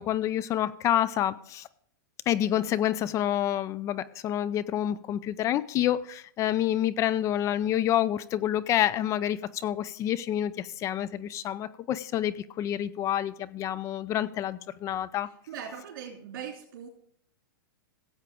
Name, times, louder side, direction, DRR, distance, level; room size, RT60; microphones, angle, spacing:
voice 1, 0.0-1.7 2.3-15.3, left 11 dB, 25° left, 17 dB, 0.5 m, -28 dB
voice 2, 15.5-16.9, right 8 dB, 65° right, -1 dB, 3.1 m, -40 dB
15.5 x 8.0 x 3.6 m, 0.63 s
hypercardioid pair, 135°, 11 cm